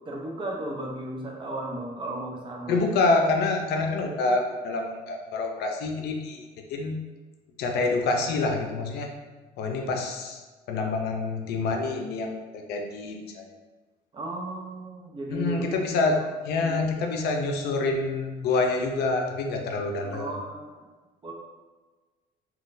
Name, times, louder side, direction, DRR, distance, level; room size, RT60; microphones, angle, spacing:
voice 1, 0.0-2.8 14.1-15.7 16.6-16.8 20.0-20.8 21.2-21.3, right 1 dB, 30° right, -1 dB, 0.7 m, -35 dB
voice 2, 2.7-7.0 7.6-9.1 9.6-10.4 10.7-13.5 15.3-20.4, left 3 dB, 75° left, 2 dB, 0.5 m, -27 dB
3.7 x 2.3 x 2.5 m, 1.3 s
cardioid pair, 110°, 17 cm